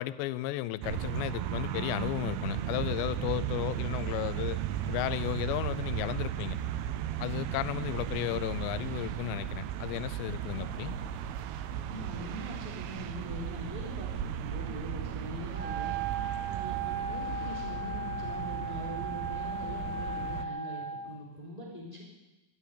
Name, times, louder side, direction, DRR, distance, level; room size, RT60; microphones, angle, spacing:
voice 1, 0.0-4.6 4.9-6.6 7.2-11.0, left 16 dB, 90° left, 16 dB, 2.8 m, -34 dB
sound 1, 0.8-20.5, right 11 dB, 80° right, 2.4 m, -36 dB
voice 2, 11.9-14.1 14.4-15.9 16.4-22.0, equal, 10° left, -4 dB, 2.9 m, -42 dB
Wind instrument woodwind instrument, 15.5-21.1, right 3 dB, 45° right, 3.8 m, -36 dB
12.0 x 10.5 x 9.9 m, 1.1 s
omnidirectional pair, 4.9 m